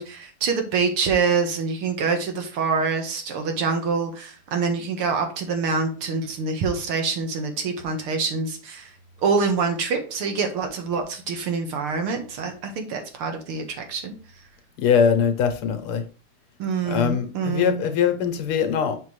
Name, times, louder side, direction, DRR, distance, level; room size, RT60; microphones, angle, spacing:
voice 1, 0.0-8.9 9.2-14.2 16.6-17.9, right 5 dB, 85° right, 2.3 m, -25 dB
voice 2, 14.8-16.0 16.8-19.0, left 7 dB, 80° left, 1.9 m, -22 dB
7.2 x 6.0 x 3.1 m
omnidirectional pair, 2.4 m